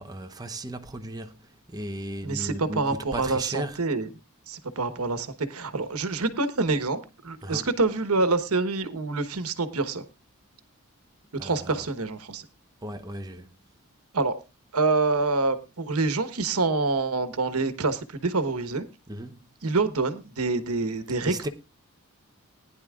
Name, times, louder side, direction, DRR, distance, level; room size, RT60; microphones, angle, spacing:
voice 1, 0.0-3.8 7.4-7.7 11.4-11.8 12.8-13.5 19.1-19.4 21.2-21.5, right 1 dB, 15° right, 0.8 m, -36 dB
voice 2, 2.2-4.1 4.5-10.0 11.4-12.4 14.1-14.3 14.7-18.8 19.6-21.5, right 3 dB, 80° right, 1.2 m, -26 dB
19.0 x 10.0 x 2.4 m
head